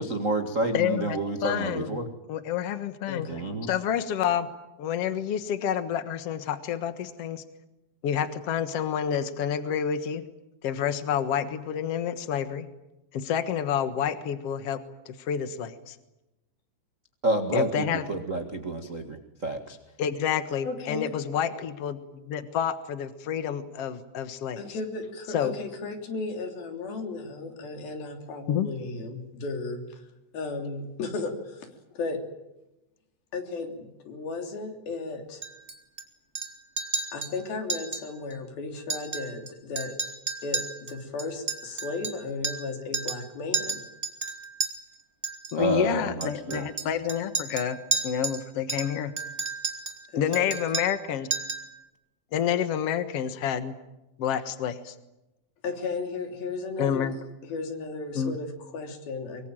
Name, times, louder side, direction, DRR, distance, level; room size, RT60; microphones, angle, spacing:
voice 1, 0.0-2.0 3.3-3.7 17.2-19.2 19.4-19.8 45.5-46.6, right 2 dB, 70° right, 5 dB, 0.7 m, -29 dB
voice 2, 0.7-2.0 2.3-3.3 3.7-4.5 4.8-7.4 8.0-10.2 10.6-12.7 13.1-14.8 15.0-16.0 17.5-18.1 20.0-24.6 25.3-25.5 28.5-28.7 45.5-47.8 48.0-49.1 50.1-51.3 52.3-53.7 54.2-54.9 56.8-57.1 58.1-58.3, left 9 dB, 80° left, 11 dB, 1.3 m, -28 dB
voice 3, 3.1-3.4 20.6-21.1 24.6-30.0 30.3-31.7 31.9-32.2 33.3-35.4 37.1-39.9 40.4-43.8 50.1-50.5 55.6-57.1 57.4-59.5, left 3 dB, 60° left, 5 dB, 5.0 m, -35 dB
Chink clink, 35.4-36.0 36.3-36.5 36.8-37.3 37.7-38.0 38.3-38.4 38.8-39.5 39.8-42.7 42.9-43.2 43.5-44.7 45.2-45.5 46.2-48.4 48.7-50.0 50.3-51.0 51.3-51.7, right 4 dB, 25° right, 1.5 m, -32 dB
24.0 x 24.0 x 9.0 m, 0.95 s
omnidirectional pair, 5.0 m